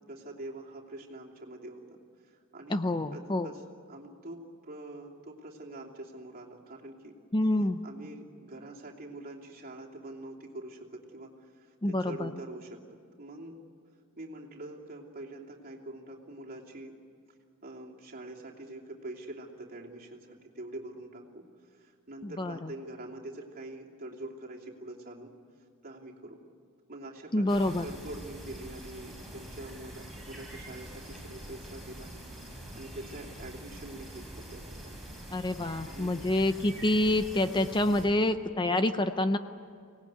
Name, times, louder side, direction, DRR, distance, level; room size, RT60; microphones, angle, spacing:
voice 1, 0.1-3.6 3.9-7.1 7.8-13.6 14.2-17.0 17.6-25.3 25.8-26.4 26.9-32.1 32.4-35.0 35.8-36.2, right 1 dB, 40° right, -1 dB, 2.9 m, -45 dB
voice 2, 2.7-3.5 7.3-7.8 11.8-12.3 22.2-22.7 27.3-27.9 35.3-39.4, left 1 dB, 20° left, 9 dB, 0.6 m, -27 dB
sound 1, 27.5-38.0, right 1 dB, ahead, 6.1 m, -45 dB
25.0 x 18.5 x 9.4 m, 2.3 s
head